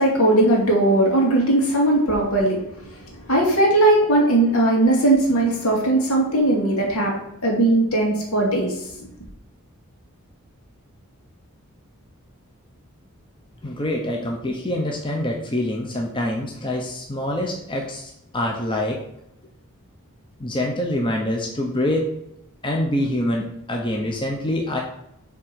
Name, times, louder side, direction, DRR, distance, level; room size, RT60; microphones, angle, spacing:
voice 1, 0.0-2.6 2.9-7.1 7.4-8.7, right 1 dB, 70° left, -1 dB, 2.5 m, -18 dB
voice 2, 13.6-19.0 20.4-22.1 22.6-24.8, left 1 dB, 20° left, 0 dB, 0.9 m, -25 dB
7.5 x 3.7 x 6.1 m, 0.80 s
head